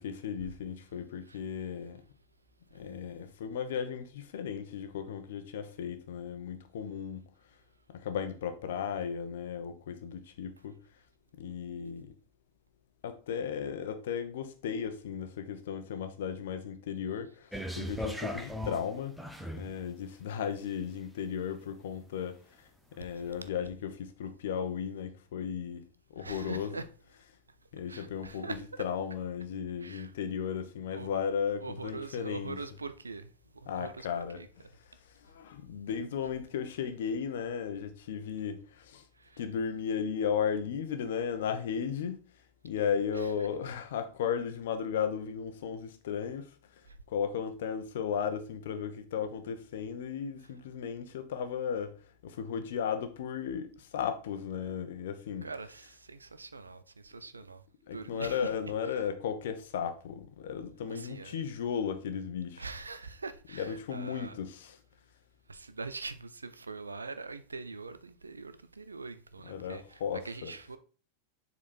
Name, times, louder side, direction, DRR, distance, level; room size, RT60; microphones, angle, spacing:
voice 1, 0.0-2.0 2.7-7.3 7.9-10.7 11.4-12.1 13.0-19.1 19.5-22.3 22.9-25.9 26.1-26.7 27.7-32.6 33.7-34.4 35.2-39.0 39.4-42.2 42.6-46.5 47.1-51.9 52.2-55.5 57.9-62.6 63.5-64.8 69.5-70.5, left 7 dB, 55° left, 1.1 m, -35 dB
sound 1, 17.5-19.8 20.5-20.6, equal, ahead, 0.9 m, -37 dB
voice 2, 26.2-26.9 27.9-28.6 29.8-30.1 30.9-31.1 31.6-34.1 34.3-34.5 39.2-39.4 43.1-43.5 46.9-47.0 55.4-57.6 57.9-59.0 60.9-61.4 62.6-64.4 65.5-70.8, right 4 dB, 75° right, 0.6 m, -43 dB
7.3 x 4.2 x 4.5 m
figure-of-eight pair, 90°, 0 cm